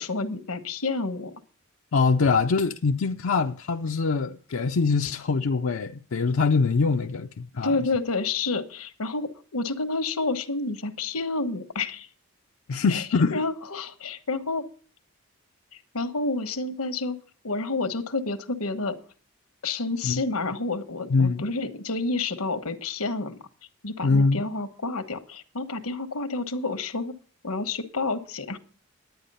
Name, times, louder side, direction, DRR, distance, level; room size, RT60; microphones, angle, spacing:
voice 1, 0.0-1.3 7.6-12.1 12.9-13.0 13.3-14.6 15.9-17.2 17.4-19.0 19.6-23.4 23.8-27.1 27.4-28.6, left 3 dB, 85° left, 1.2 m, -29 dB
voice 2, 1.9-7.8 12.7-13.4 20.0-20.2 21.1-21.4 24.0-24.4, left 4 dB, 65° left, 0.5 m, -23 dB
10.5 x 9.3 x 5.4 m
head